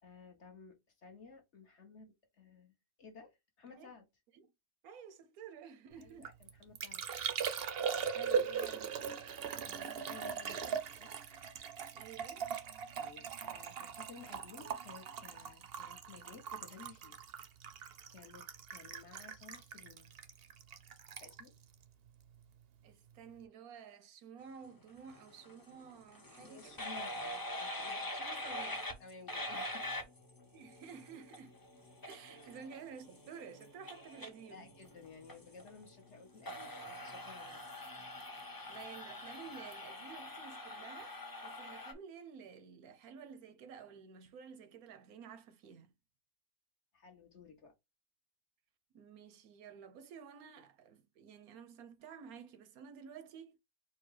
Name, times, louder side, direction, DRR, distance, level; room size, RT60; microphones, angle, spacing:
voice 1, 0.0-4.0 6.0-7.0 9.6-10.7 11.0-11.1 12.9-17.2 18.1-20.1 21.2-21.5 26.4-28.1 29.0-29.9 32.4-32.6 34.5-37.6 46.9-47.7, left 4 dB, 55° left, 1.4 m, -55 dB
voice 2, 4.8-6.3 8.1-9.2 11.9-12.5 22.8-26.8 28.1-28.9 30.5-31.6 32.0-34.7 38.7-45.9 48.9-53.6, right 7 dB, 85° right, 1.2 m, -52 dB
Liquid, 6.0-22.6 22.9-23.4, right 7 dB, 55° right, 0.7 m, -40 dB
sound 1, 25.0-41.9, left 1 dB, 20° left, 0.7 m, -45 dB
4.5 x 2.3 x 4.7 m
omnidirectional pair, 1.5 m